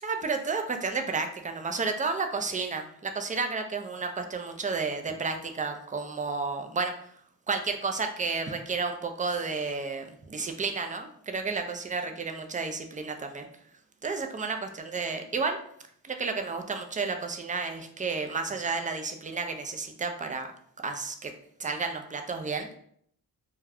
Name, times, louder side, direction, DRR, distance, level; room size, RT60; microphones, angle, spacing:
voice 1, 0.0-7.1 7.5-13.5 14.0-15.6 16.1-20.5 20.8-21.3 21.6-22.7, right 4 dB, 20° right, 5 dB, 0.4 m, -31 dB
2.3 x 2.2 x 3.4 m, 0.64 s
supercardioid pair, 55°, 40 cm